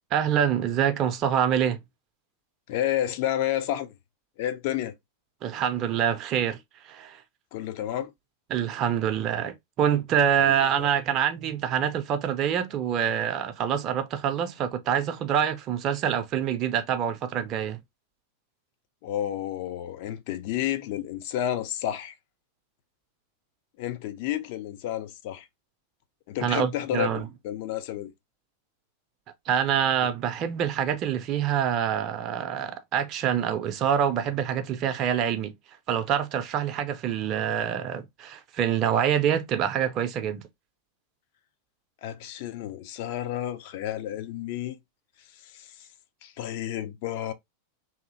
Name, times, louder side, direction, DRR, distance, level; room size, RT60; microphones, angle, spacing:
voice 1, 0.1-1.8 5.4-6.6 6.8-7.2 8.5-17.8 26.4-27.3 29.5-35.5 35.9-40.4, right 9 dB, 35° right, 0.5 m, -26 dB
voice 2, 2.7-3.9 4.4-4.9 7.5-8.1 10.4-10.9 19.0-22.2 23.8-25.5 26.3-28.1 42.0-44.8 45.4-45.9 46.2-47.3, left 12 dB, 50° left, 0.4 m, -31 dB
2.7 x 2.7 x 2.5 m
figure-of-eight pair, 90°, 0 cm